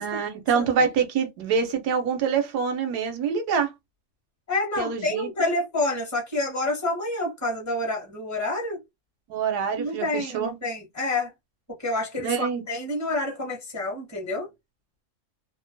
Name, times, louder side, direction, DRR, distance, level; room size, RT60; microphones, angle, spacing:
voice 1, 0.0-3.7 4.8-5.5 9.3-10.5 12.2-12.6, right 6 dB, 85° right, 1.3 m, -25 dB
voice 2, 4.5-8.8 9.8-11.3 11.8-14.5, left 2 dB, 10° left, 1.0 m, -28 dB
2.8 x 2.0 x 2.6 m
omnidirectional pair, 1.7 m